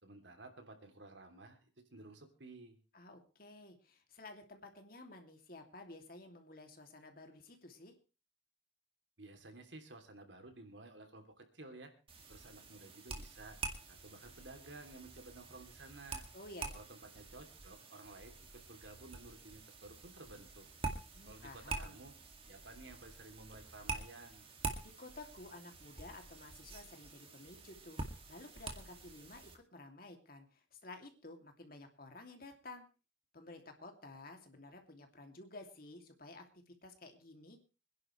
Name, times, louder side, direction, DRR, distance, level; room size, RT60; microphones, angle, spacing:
voice 1, 0.0-2.8 9.2-11.9 12.3-13.6 13.9-16.3 16.7-20.6 21.3-22.1 22.5-24.5, right 2 dB, 75° right, 5 dB, 3.0 m, -54 dB
voice 2, 2.9-7.9 16.3-16.7 21.1-22.0 24.8-32.9 33.3-37.6, left 2 dB, 50° left, 5 dB, 2.6 m, -53 dB
sound 1, 12.1-29.6, right 3 dB, 30° right, 2.3 m, -47 dB
25.5 x 11.0 x 3.2 m, 0.32 s
head